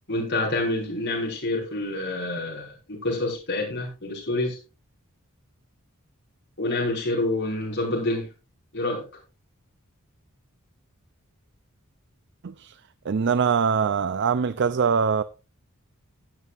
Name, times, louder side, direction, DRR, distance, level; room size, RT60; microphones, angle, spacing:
voice 1, 0.1-4.6 6.6-8.3 8.7-9.0, left 2 dB, 55° left, 5.3 m, -27 dB
voice 2, 12.4-12.8 13.0-15.2, right 6 dB, 55° right, 0.4 m, -23 dB
17.0 x 9.1 x 2.5 m
head